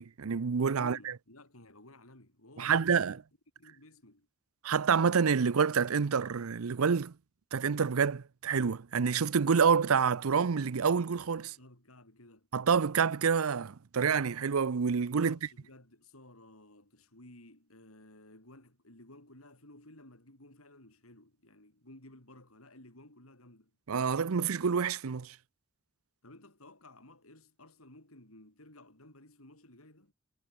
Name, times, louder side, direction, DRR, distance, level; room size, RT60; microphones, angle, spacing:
voice 1, 0.0-1.0 2.6-3.1 4.6-7.1 7.5-11.5 12.5-15.4 23.9-25.3, right 6 dB, 90° right, 0.6 m, -27 dB
voice 2, 0.7-3.2 3.6-4.3 11.4-12.5 15.0-23.7 26.2-30.1, left 1 dB, 90° left, 7.9 m, -55 dB
head